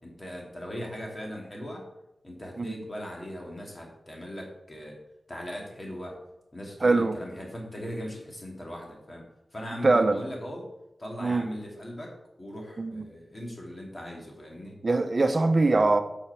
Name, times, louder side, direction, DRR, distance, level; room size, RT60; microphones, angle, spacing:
voice 1, 0.0-1.8 2.2-5.0 5.3-6.2 6.5-9.2 9.5-10.6 11.0-14.8, equal, 35° left, 2.4 m, -39 dB
voice 2, 6.8-7.2 9.8-10.2 11.2-11.5 12.8-13.1 14.8-16.0, right 3 dB, 50° right, 0.7 m, -22 dB
8.3 x 5.9 x 4.7 m
cardioid pair, 50°, 0 cm